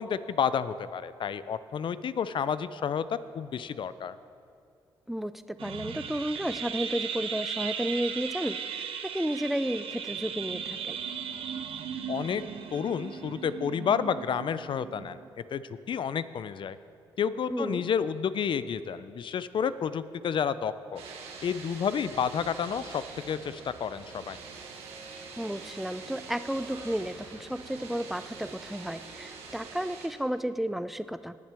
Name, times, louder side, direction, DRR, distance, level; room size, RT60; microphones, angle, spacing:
voice 1, 0.0-4.2 12.1-12.4 12.7-15.2 15.5-16.8 17.2-21.0 21.4-24.4, left 7 dB, 55° left, 14 dB, 0.5 m, -30 dB
voice 2, 5.1-11.0 17.5-17.8 25.4-31.4, equal, ahead, 13 dB, 0.5 m, -32 dB
sound 1, 5.6-15.3, right 7 dB, 65° right, 0.7 m, -37 dB
sound 2, 21.0-30.1, right 4 dB, 85° right, 1.3 m, -45 dB
19.0 x 7.3 x 3.5 m, 2.4 s
supercardioid pair, 55°, 10 cm